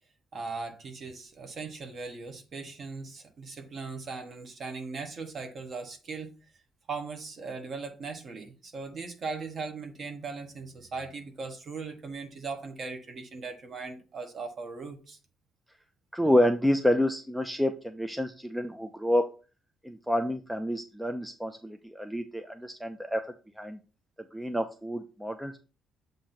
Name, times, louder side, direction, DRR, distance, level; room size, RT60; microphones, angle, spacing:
voice 1, 0.3-6.3 6.9-15.2, right 4 dB, 35° right, 1.0 m, -39 dB
voice 2, 16.1-19.2 19.8-23.2 23.6-23.8 24.3-25.6, left 1 dB, ahead, 0.4 m, -28 dB
7.4 x 2.6 x 5.7 m
cardioid pair, 175°, 0 cm